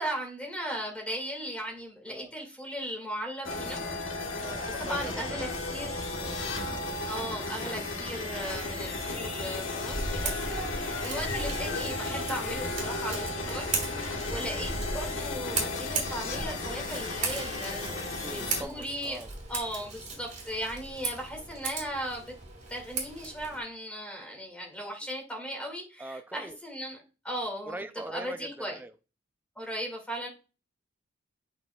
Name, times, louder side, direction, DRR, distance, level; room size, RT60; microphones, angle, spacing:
voice 1, 0.0-3.8 4.8-5.9 7.1-10.2 10.5-10.6 11.0-13.6 14.3-17.9 18.3-19.2 19.5-19.9 20.2-22.2 22.7-25.8 26.3-27.0 27.3-28.8 29.6-30.3, equal, 5° left, 2.1 m, -37 dB
sound 1, 3.4-18.6, left 3 dB, 70° left, 1.5 m, -34 dB
voice 2, 4.4-5.5 5.8-6.4 17.9-19.3 26.0-26.6 27.7-28.9, right 2 dB, 10° right, 0.4 m, -42 dB
Scissors, 9.9-23.6, right 4 dB, 40° right, 2.5 m, -37 dB
8.1 x 5.4 x 2.3 m
head